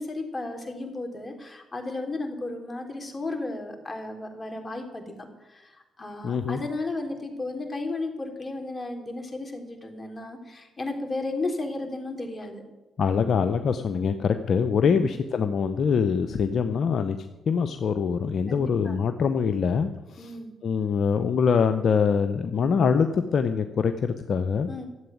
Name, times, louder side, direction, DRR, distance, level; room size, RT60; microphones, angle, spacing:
voice 1, 0.0-12.6 14.9-15.2 18.5-19.0 20.2-20.5 24.7-24.9, left 2 dB, 30° left, 3 dB, 3.6 m, -34 dB
voice 2, 6.2-6.6 13.0-17.2 17.5-20.3 20.6-23.9 24.3-24.7, left 6 dB, 65° left, 9 dB, 0.8 m, -24 dB
13.0 x 8.0 x 9.3 m, 1.1 s
supercardioid pair, 50°, 0 cm